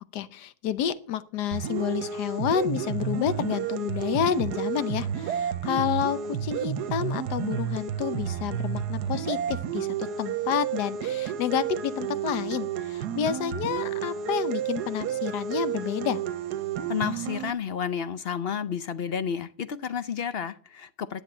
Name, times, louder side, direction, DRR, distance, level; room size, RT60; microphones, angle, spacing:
voice 1, 0.1-16.2, left 9 dB, 85° left, 15 dB, 1.4 m, -29 dB
sound 1, 1.5-17.5, right 9 dB, 80° right, 1.4 m, -31 dB
voice 2, 16.9-21.2, left 7 dB, 55° left, 13 dB, 0.6 m, -31 dB
11.0 x 7.1 x 8.8 m, 0.44 s
omnidirectional pair, 1.7 m